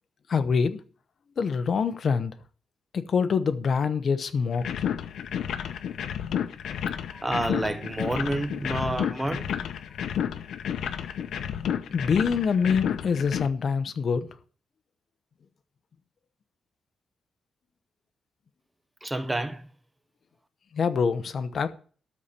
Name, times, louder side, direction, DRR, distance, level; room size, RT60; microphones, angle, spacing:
voice 1, 0.3-0.8 1.4-2.3 2.9-4.6 11.9-14.3 20.7-21.7, left 5 dB, 45° left, 0.9 m, -25 dB
sound 1, 4.5-13.5, left 9 dB, 75° left, 0.8 m, -31 dB
voice 2, 7.1-9.5 19.0-19.7, right 1 dB, 10° right, 0.7 m, -29 dB
13.0 x 4.3 x 8.3 m
wide cardioid pair, 160°, 0 cm